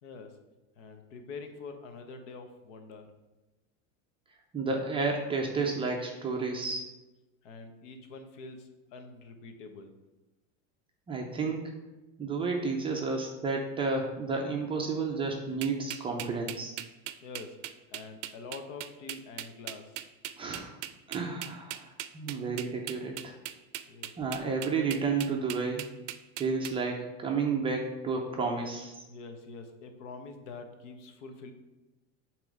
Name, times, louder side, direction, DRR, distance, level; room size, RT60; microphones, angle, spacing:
voice 1, 0.0-0.4 0.7-3.1 7.4-9.9 17.2-17.6 17.9-20.0 23.9-24.1 29.1-31.5, left 4 dB, 75° left, 6 dB, 1.1 m, -45 dB
voice 2, 4.5-6.8 11.1-11.7 12.2-16.7 20.4-20.8 21.1-23.4 24.2-25.8 26.4-29.0, right 4 dB, 15° right, 0 dB, 0.4 m, -31 dB
sound 1, 15.6-26.7, right 13 dB, 70° right, 0.5 m, -39 dB
7.4 x 3.0 x 4.9 m, 1.1 s
supercardioid pair, 150°, 37 cm